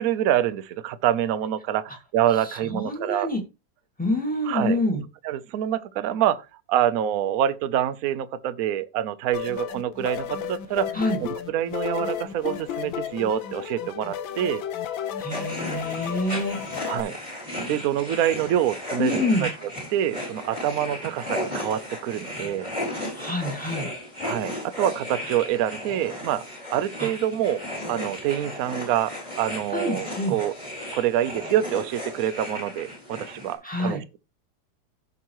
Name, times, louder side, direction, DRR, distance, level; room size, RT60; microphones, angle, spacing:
voice 1, 0.0-3.3 4.4-4.8 5.2-6.4 6.7-10.9 11.2-14.6 16.9-17.2 17.7-19.5 19.9-22.7 24.2-26.4 26.7-30.5 30.9-34.2, right 11 dB, 65° right, 0.9 m, -26 dB
voice 2, 2.4-3.4 4.0-5.0 10.9-11.2 15.2-16.6 19.0-19.5 23.1-23.9 27.0-27.1 29.7-30.4 33.6-34.0, left 1 dB, 5° left, 1.9 m, -26 dB
sound 1, 9.3-17.0, left 9 dB, 85° left, 1.6 m, -33 dB
sound 2, 15.3-33.5, left 1 dB, 20° left, 4.1 m, -35 dB
15.0 x 5.5 x 3.0 m
omnidirectional pair, 2.1 m